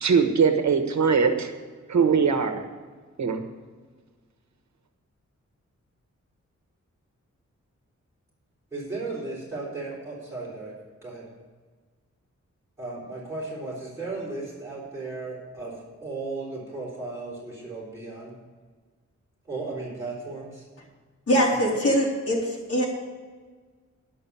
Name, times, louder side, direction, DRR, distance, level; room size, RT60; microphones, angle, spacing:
voice 1, 0.0-1.5 1.9-2.6 3.2-3.4, right 5 dB, 70° right, 5 dB, 1.3 m, -21 dB
voice 2, 8.7-10.7 11.0-11.3 12.8-18.4 19.5-20.6, right 3 dB, 10° right, -8 dB, 4.0 m, -35 dB
voice 3, 21.3-22.9, equal, 55° left, -4 dB, 3.9 m, -23 dB
10.5 x 6.5 x 8.4 m, 1.5 s
wide cardioid pair, 155°, 29 cm